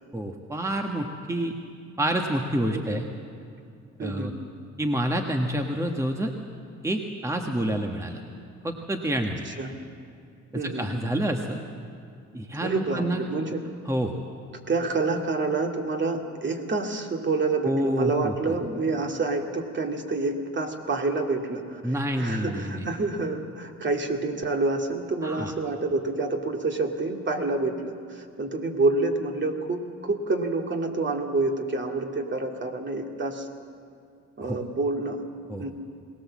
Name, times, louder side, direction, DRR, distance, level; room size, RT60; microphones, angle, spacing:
voice 1, 0.1-1.5 2.0-3.0 4.0-4.3 4.8-6.3 6.8-8.2 8.6-9.4 10.6-11.6 12.3-13.2 13.8-14.1 17.6-18.5 21.8-22.9 25.2-25.5 34.4-34.6 35.5-35.6, right 1 dB, 10° right, 3 dB, 1.4 m, -28 dB
voice 2, 4.0-4.3 9.5-9.8 10.5-10.9 12.6-13.7 14.7-33.5 34.4-35.2 35.6-35.7, right 3 dB, 40° right, 3 dB, 2.3 m, -28 dB
22.0 x 18.5 x 7.4 m, 2.4 s
cardioid pair, 90°, 30 cm